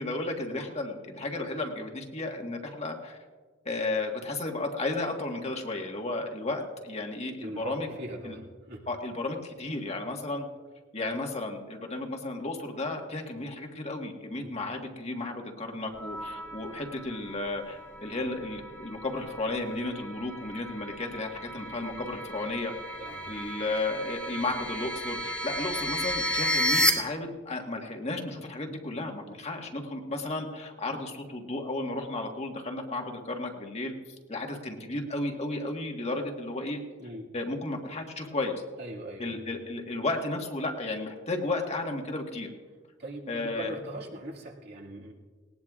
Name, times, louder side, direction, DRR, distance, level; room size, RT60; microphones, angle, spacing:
voice 1, 0.0-3.2 3.6-7.9 8.2-8.4 8.9-10.5 10.9-22.7 23.3-33.9 34.3-36.8 37.3-38.5 39.2-42.5 43.3-43.8, left 2 dB, 35° left, 2 dB, 1.5 m, -33 dB
voice 2, 7.4-8.9 14.4-14.5 23.0-23.3 37.0-37.3 38.8-39.4 43.0-45.1, right 1 dB, 55° right, -2 dB, 2.0 m, -40 dB
sound 1, 16.0-26.9, equal, 5° left, 1.8 m, -33 dB
19.0 x 18.5 x 2.4 m, 1.4 s
head